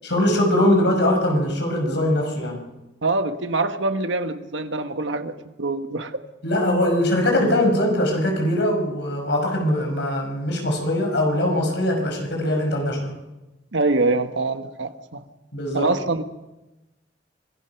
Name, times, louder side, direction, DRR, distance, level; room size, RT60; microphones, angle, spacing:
voice 1, 0.1-2.6 6.4-13.2 15.5-15.9, left 1 dB, 65° left, 2 dB, 5.6 m, -21 dB
voice 2, 3.0-6.2 13.7-15.2 15.7-16.2, right 3 dB, 80° right, 8 dB, 1.4 m, -24 dB
25.5 x 18.5 x 6.0 m, 1.0 s
head